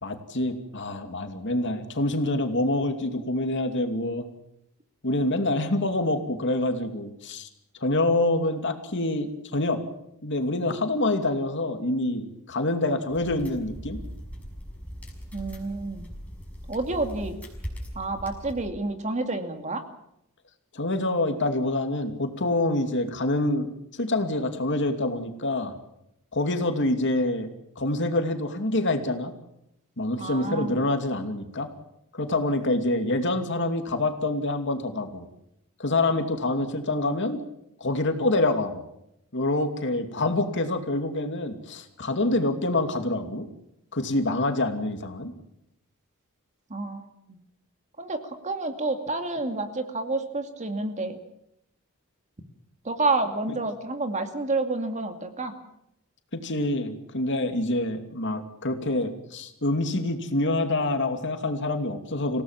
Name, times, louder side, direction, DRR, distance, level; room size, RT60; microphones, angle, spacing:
voice 1, 0.0-4.2 5.0-7.5 7.8-9.8 10.2-14.0 20.7-25.7 26.3-27.5 27.8-29.3 30.0-31.7 32.1-35.3 35.8-37.4 37.8-38.8 39.3-43.5 43.9-45.3 53.5-53.6 56.3-62.4, left 2 dB, 55° left, 6 dB, 2.6 m, -26 dB
sound 1, 13.1-18.7, equal, 5° left, 6.2 m, -40 dB
voice 2, 15.3-16.1 16.7-17.4 17.9-19.8 30.2-30.7 46.7-47.4 48.0-51.2 52.8-55.5, right 3 dB, 35° right, 6 dB, 2.4 m, -29 dB
27.5 x 17.5 x 7.4 m, 0.80 s
head